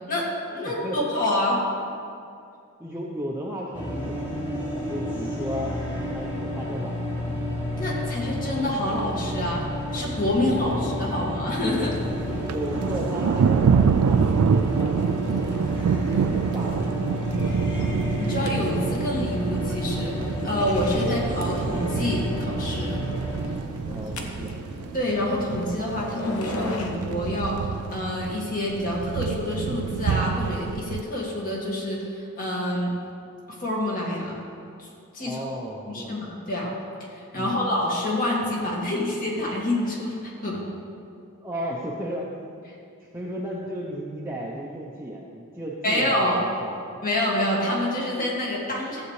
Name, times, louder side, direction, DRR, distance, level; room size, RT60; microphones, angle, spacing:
voice 1, 0.1-1.6 7.8-9.7 9.9-12.0 18.2-23.0 24.9-27.6 27.9-32.9 33.5-34.4 34.8-34.9 35.1-35.4 35.9-36.7 37.1-40.7 45.8-46.4 47.0-49.0, left 1 dB, 40° left, -4 dB, 2.0 m, -27 dB
voice 2, 0.6-1.2 2.8-4.3 4.9-5.8 6.1-7.3 10.6-10.8 12.5-15.7 16.2-17.0 21.0-21.2 23.9-24.5 35.2-36.2 37.3-37.6 41.4-42.3 43.0-47.0, equal, 10° right, -4 dB, 0.7 m, -34 dB
sound 1, 3.7-23.5, equal, 25° left, 2.2 m, -30 dB
Thunder, 11.8-31.0, right 6 dB, 75° right, 0.3 m, -27 dB
sound 2, 14.1-26.9, left 1 dB, 70° left, 1.0 m, -41 dB
14.0 x 8.0 x 3.2 m, 2.4 s
head